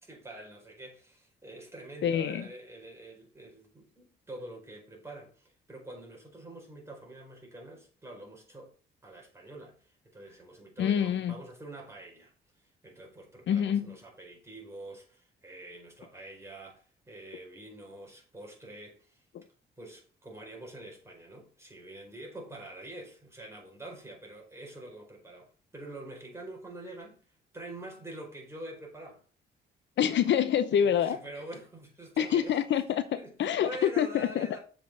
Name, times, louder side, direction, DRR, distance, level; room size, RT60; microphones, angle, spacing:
voice 1, 0.0-8.7 9.0-19.2 19.8-27.2 27.5-29.2 30.7-32.6 33.2-34.6, right 1 dB, 15° right, 4.7 m, -46 dB
voice 2, 2.0-2.5 10.8-11.3 13.5-13.9 19.3-19.4 30.0-31.2 32.2-33.1 33.4-34.5, left 9 dB, 65° left, 0.9 m, -26 dB
7.2 x 5.6 x 5.5 m
cardioid pair, 90°, 20 cm